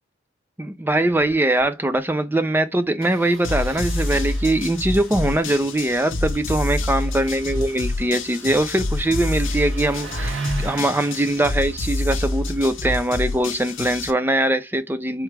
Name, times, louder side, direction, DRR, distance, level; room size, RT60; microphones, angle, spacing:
voice 1, 0.6-15.2, right 1 dB, 10° right, 0.5 m, -22 dB
Engine starting, 1.2-1.3 1.6-1.7 1.9-2.1 3.0-14.1, right 3 dB, 65° right, 2.2 m, -39 dB
sound 1, 3.4-14.1, left 2 dB, 70° left, 0.8 m, -27 dB
4.6 x 3.5 x 3.3 m
head